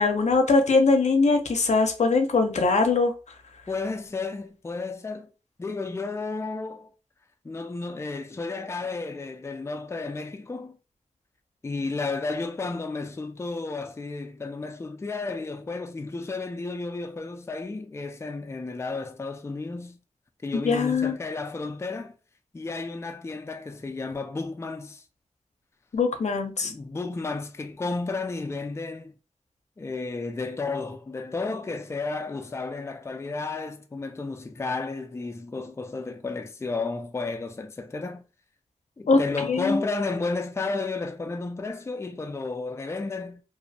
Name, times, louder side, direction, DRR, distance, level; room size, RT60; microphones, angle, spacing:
voice 1, 0.0-3.1 20.6-21.1 25.9-26.7 39.1-39.2 39.5-39.8, left 3 dB, 75° left, 0.5 m, -21 dB
voice 2, 3.7-5.3 5.6-6.9 7.4-10.8 11.6-20.0 20.4-22.1 22.5-25.0 26.6-29.1 29.8-38.2 39.0-43.4, left 3 dB, 20° left, 0.3 m, -32 dB
2.5 x 2.0 x 2.7 m
cardioid pair, 45°, 12 cm